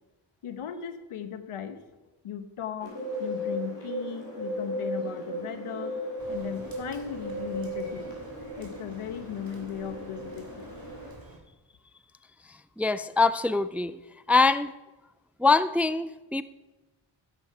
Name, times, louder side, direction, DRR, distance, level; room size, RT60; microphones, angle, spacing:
voice 1, 0.4-1.8 2.2-6.0 6.3-8.2 8.6-10.7, left 8 dB, 90° left, 10 dB, 1.1 m, -37 dB
Bird, 2.8-11.1, equal, 55° left, 4.4 m, -36 dB
Rain, 6.2-11.4, right 2 dB, 45° right, 2.8 m, -50 dB
voice 2, 12.5-14.0 14.3-14.7 15.4-16.4, left 3 dB, 5° right, 14 dB, 0.3 m, -24 dB
12.0 x 8.2 x 4.7 m, 1.1 s
cardioid pair, 65°, 49 cm